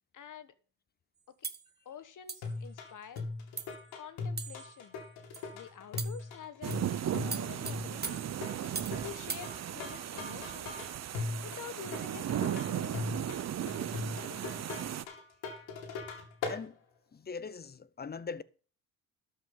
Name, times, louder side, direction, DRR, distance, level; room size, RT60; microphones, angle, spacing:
voice 1, 0.1-0.5 1.4-1.5 1.8-3.2 4.0-5.0 5.5-8.4 9.0-10.8 11.4-13.0, left 8 dB, 55° left, 1.4 m, -48 dB
sound 1, 1.4-1.7 2.3-2.5 3.2-3.3 3.6-3.8 4.4-4.7 5.3-5.5 6.0-6.3 6.7-6.9 7.3-9.0 9.3-9.5, right 5 dB, 25° right, 1.0 m, -40 dB
sound 2, 2.4-16.6, left 3 dB, 85° left, 2.4 m, -40 dB
sound 3, 6.6-15.0, right 10 dB, 45° right, 0.7 m, -36 dB
voice 2, 16.4-16.8 17.1-18.4, left 5 dB, 25° left, 0.7 m, -41 dB
12.5 x 5.6 x 5.4 m
supercardioid pair, 75°, 38 cm